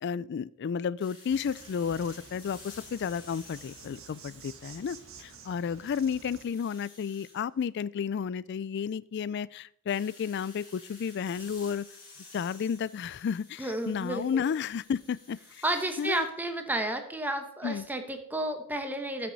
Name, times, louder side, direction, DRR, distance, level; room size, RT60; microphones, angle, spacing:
voice 1, 0.0-11.9 12.3-15.6 16.0-16.2 17.6-17.9, left 7 dB, 50° left, 20 dB, 0.3 m, -32 dB
sound 1, 1.0-5.3 5.7-7.4 9.9-16.2, left 3 dB, 20° left, 3.3 m, -53 dB
Insect, 1.3-6.5, right 5 dB, 70° right, 1.3 m, -51 dB
voice 2, 13.6-14.4 15.6-19.3, right 1 dB, 10° right, 6 dB, 1.1 m, -32 dB
13.5 x 6.1 x 4.0 m, 0.78 s
head